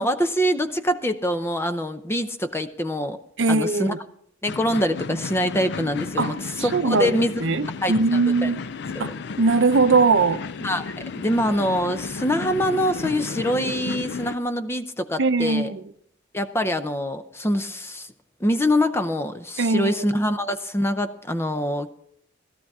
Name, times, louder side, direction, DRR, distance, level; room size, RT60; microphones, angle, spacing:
voice 1, 0.0-3.2 3.5-3.9 4.4-7.4 7.8-8.5 8.9-9.1 10.6-15.7 16.3-18.1 18.4-21.9, equal, 15° left, 0.6 m, -25 dB
voice 2, 3.4-4.0 6.2-6.3 6.7-8.7 9.0-9.1 9.4-10.4 15.2-15.8 19.6-20.0, right 3 dB, 65° right, 0.6 m, -20 dB
sound 1, 4.5-14.4, left 4 dB, 60° left, 0.4 m, -33 dB
17.5 x 13.0 x 3.6 m
head